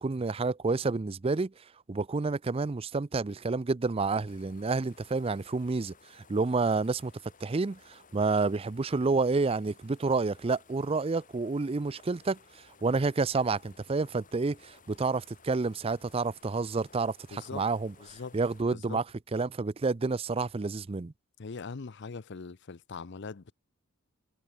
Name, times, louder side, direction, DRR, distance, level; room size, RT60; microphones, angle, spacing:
voice 1, 0.0-1.5 1.9-7.1 7.4-12.4 12.8-17.9 18.3-19.0 19.3-21.1, right 3 dB, 25° right, 0.4 m, -29 dB
sound 1, 4.3-18.6, left 4 dB, 40° left, 6.3 m, -59 dB
voice 2, 17.3-17.6 18.0-18.4 18.7-19.0 21.4-23.5, left 4 dB, 55° left, 0.6 m, -41 dB
head